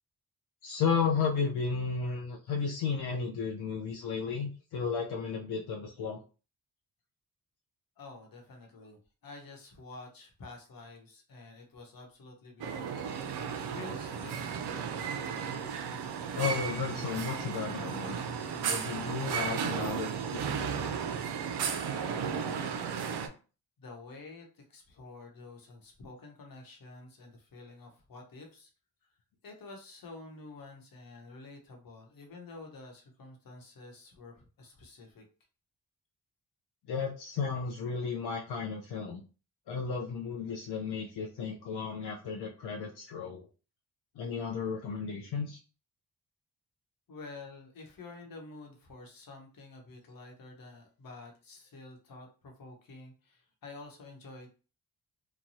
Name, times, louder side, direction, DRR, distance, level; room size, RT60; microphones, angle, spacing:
voice 1, 0.6-6.2 16.3-18.2 18.6-20.9 36.9-39.2 39.7-43.5 44.2-45.6, left 5 dB, 85° left, -1 dB, 0.6 m, -34 dB
voice 2, 8.0-14.9 23.8-28.7 29.0-29.1 29.4-35.2 47.1-54.5, left 3 dB, 60° left, 2 dB, 1.0 m, -49 dB
sound 1, 12.6-23.3, right 7 dB, 85° right, 0.5 m, -34 dB
3.0 x 2.2 x 2.7 m, 0.36 s
cardioid pair, 75°, 38 cm